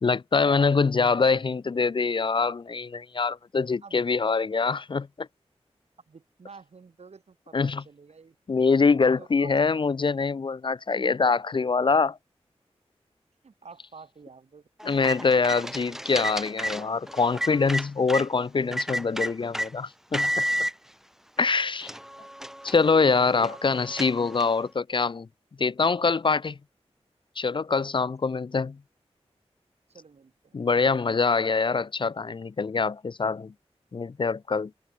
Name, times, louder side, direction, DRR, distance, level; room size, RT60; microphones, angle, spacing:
voice 1, 0.0-5.3 7.5-7.8 8.5-12.2 14.8-20.4 21.4-21.9 22.6-25.3 25.6-26.6 27.4-28.8 30.5-33.5 33.9-34.7, left 4 dB, 45° left, 0.5 m, -24 dB
voice 2, 6.1-8.4 9.2-9.5 13.4-15.0 22.1-22.3 23.4-23.6 27.7-28.0 29.9-31.0, right 5 dB, 70° right, 5.9 m, -50 dB
sound 1, 14.8-18.3 18.7-19.7 20.1-20.7 21.4-21.5 21.8-24.6, equal, 5° right, 1.7 m, -32 dB
wide cardioid pair, 100°, 11 cm